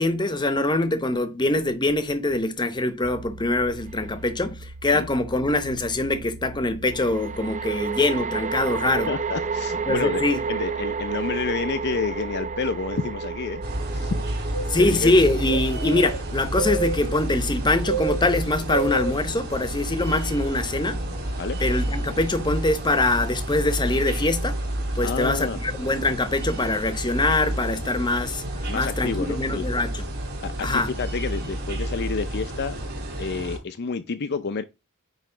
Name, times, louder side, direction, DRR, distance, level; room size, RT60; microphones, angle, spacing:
voice 1, 0.0-9.1 9.9-10.4 14.7-21.0 21.6-24.6 24.9-28.4 28.7-30.0 30.6-30.9, left 2 dB, 20° left, 0.9 m, -23 dB
sound 1, 3.0-22.1, right 2 dB, 80° right, 2.2 m, -41 dB
sound 2, 3.9-4.0 6.9-18.3, right 5 dB, 35° right, 0.7 m, -32 dB
voice 2, 9.1-10.2 10.5-13.6 13.9-14.5 14.8-15.2 21.4-21.6 25.0-25.6 28.7-29.6 30.4-32.7 33.2-34.6, left 4 dB, 50° left, 0.5 m, -29 dB
sound 3, 13.6-33.6, right 1 dB, 50° right, 4.2 m, -29 dB
9.0 x 3.1 x 5.0 m
head